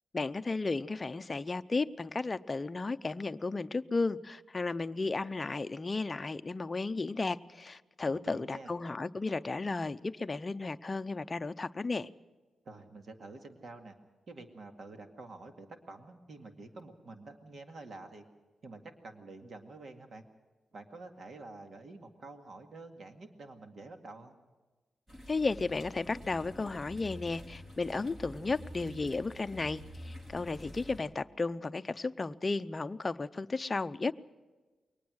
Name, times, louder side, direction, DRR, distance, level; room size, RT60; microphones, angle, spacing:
voice 1, 0.1-12.1 25.3-34.1, left 3 dB, 25° left, 10 dB, 0.6 m, -34 dB
voice 2, 8.1-8.8 12.7-13.9 14.3-18.2 18.6-20.2 20.7-24.4 28.4-28.5, right 3 dB, 55° right, 5 dB, 2.1 m, -48 dB
sound 1, 25.1-31.0, equal, 30° right, 4.1 m, -48 dB
22.5 x 19.0 x 6.4 m, 1.3 s
wide cardioid pair, 120°, 0 cm